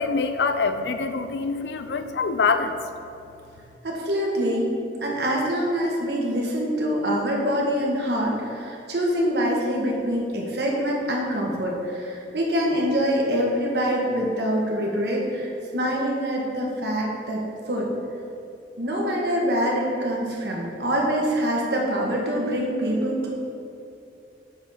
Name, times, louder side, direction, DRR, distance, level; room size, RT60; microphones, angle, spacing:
voice 1, 0.0-2.8, left 4 dB, 70° left, 9 dB, 0.4 m, -24 dB
voice 2, 3.8-4.7 5.0-17.9 18.8-23.3, equal, 65° right, -2 dB, 1.3 m, -25 dB
7.0 x 3.8 x 5.7 m, 2.7 s
head